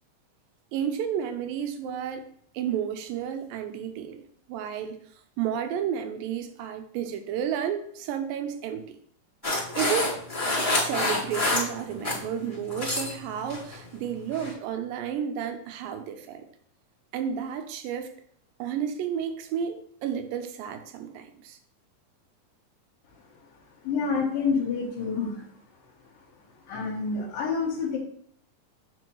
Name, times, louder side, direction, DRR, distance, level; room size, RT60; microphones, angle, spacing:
voice 1, 0.7-2.3 2.5-5.0 5.4-9.0 9.8-10.2 10.7-16.5 17.1-18.1 18.6-21.6, right 8 dB, 85° right, 8 dB, 2.4 m, -32 dB
sound 1, 9.4-12.2 12.5-13.1 13.5-13.8 14.3-14.5, left 2 dB, 10° left, 2.1 m, -27 dB
voice 2, 23.8-25.4 26.7-28.0, left 5 dB, 85° left, -4 dB, 2.9 m, -28 dB
9.0 x 4.2 x 3.1 m, 0.64 s
omnidirectional pair, 4.0 m